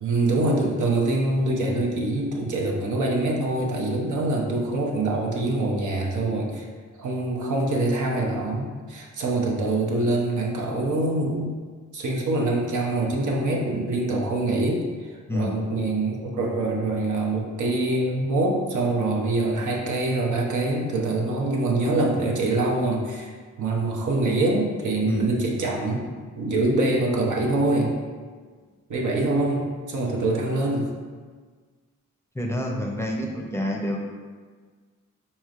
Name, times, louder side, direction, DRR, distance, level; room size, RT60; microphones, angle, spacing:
voice 1, 0.0-6.7 7.0-11.5 11.9-23.3 23.6-26.0 26.4-28.0 28.9-30.9, right 2 dB, 70° right, -1 dB, 0.7 m, -24 dB
voice 2, 32.4-34.0, left 1 dB, 10° left, -1 dB, 0.6 m, -27 dB
4.1 x 3.1 x 2.4 m, 1.5 s
cardioid pair, 40°, 31 cm